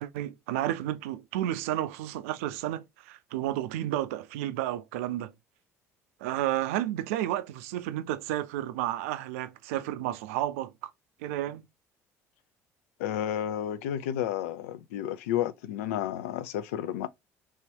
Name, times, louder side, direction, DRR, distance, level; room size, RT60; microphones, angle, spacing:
voice 1, 0.0-5.3 6.2-10.9 11.2-11.6, right 13 dB, 75° right, 0.4 m, -31 dB
voice 2, 13.0-17.1, left 11 dB, 75° left, 0.4 m, -31 dB
3.0 x 2.9 x 2.8 m
hypercardioid pair, 60°, 8 cm